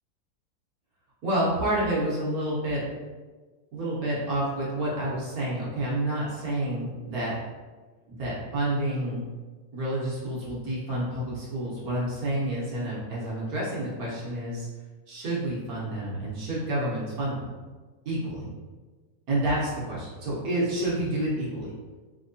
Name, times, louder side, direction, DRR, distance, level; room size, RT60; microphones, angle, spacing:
voice 1, 1.2-2.8 3.7-7.3 8.1-9.2 9.7-14.7 15.1-17.4 18.0-18.5 19.3-21.7, right 1 dB, 60° right, -7 dB, 1.3 m, -29 dB
3.6 x 2.9 x 2.6 m, 1.3 s
omnidirectional pair, 2.0 m